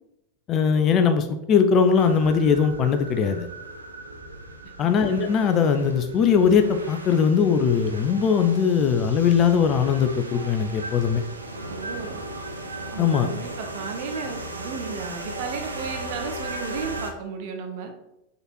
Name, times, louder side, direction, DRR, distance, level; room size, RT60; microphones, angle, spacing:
voice 1, 0.5-3.5 4.8-11.2 13.0-13.3, left 6 dB, 30° left, 8 dB, 0.6 m, -20 dB
sound 1, 2.0-17.1, right 2 dB, 80° right, 0.7 m, -37 dB
voice 2, 11.7-12.2 12.9-17.9, right 5 dB, 50° right, 4 dB, 1.0 m, -34 dB
5.3 x 4.1 x 4.4 m, 0.88 s
figure-of-eight pair, 90°, 0 cm